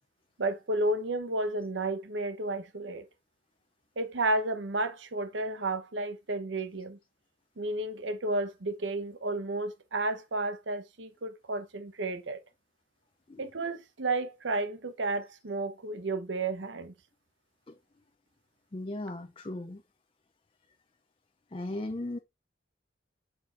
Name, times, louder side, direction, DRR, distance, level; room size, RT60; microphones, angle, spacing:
voice 1, 0.4-3.0 4.0-7.0 7.6-12.4 13.4-16.9, right 2 dB, 90° right, 0.9 m, -32 dB
voice 2, 18.7-19.8 21.5-22.2, left 1 dB, 30° left, 0.5 m, -37 dB
7.4 x 6.0 x 2.5 m
head